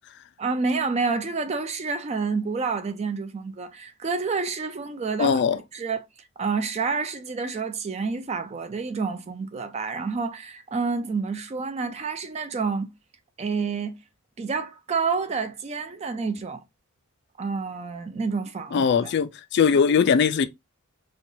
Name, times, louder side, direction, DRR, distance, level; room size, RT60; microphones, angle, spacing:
voice 1, 0.4-6.1 6.4-12.9 13.4-14.0 14.4-16.6 17.4-19.1, right 4 dB, 30° right, 0.3 m, -29 dB
voice 2, 5.2-5.6 18.7-20.5, left 6 dB, 50° left, 0.3 m, -20 dB
4.3 x 2.3 x 2.5 m
head